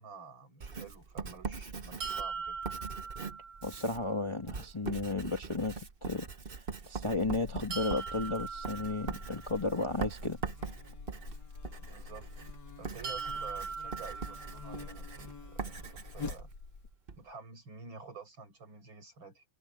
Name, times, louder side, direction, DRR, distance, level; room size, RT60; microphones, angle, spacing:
voice 1, 0.0-2.6 11.8-12.3 12.8-16.5 17.2-19.4, right 5 dB, 65° right, 6.7 m, -50 dB
Writing, 0.6-17.2, right 5 dB, 35° right, 1.0 m, -42 dB
sound 1, 2.0-4.0 7.7-9.8 13.0-15.1, right 5 dB, 85° right, 2.6 m, -41 dB
voice 2, 3.6-5.7 6.0-6.3 6.6-10.4, left 3 dB, 20° left, 1.1 m, -33 dB
Buzz, 6.9-16.9, left 4 dB, 55° left, 2.9 m, -47 dB
omnidirectional pair, 2.3 m